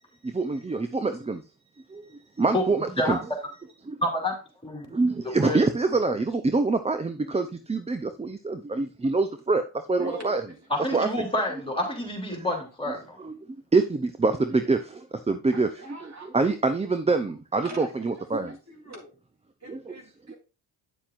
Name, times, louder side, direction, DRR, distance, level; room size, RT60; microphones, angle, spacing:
voice 1, 0.2-1.4 1.9-3.2 3.9-4.0 4.9-10.4 10.9-11.1 13.2-13.4 13.7-15.7 16.3-18.5 19.7-19.8, right 3 dB, 15° right, 9 dB, 0.5 m, -25 dB
voice 2, 4.0-4.4 4.6-5.6 10.7-13.2, left 1 dB, 10° left, 1 dB, 3.0 m, -28 dB
voice 3, 10.0-10.6 15.5-16.4 17.6-19.1 19.6-20.3, right 2 dB, 35° right, 1 dB, 3.6 m, -43 dB
9.2 x 7.2 x 2.5 m, 0.32 s
cardioid pair, 90°, 45 cm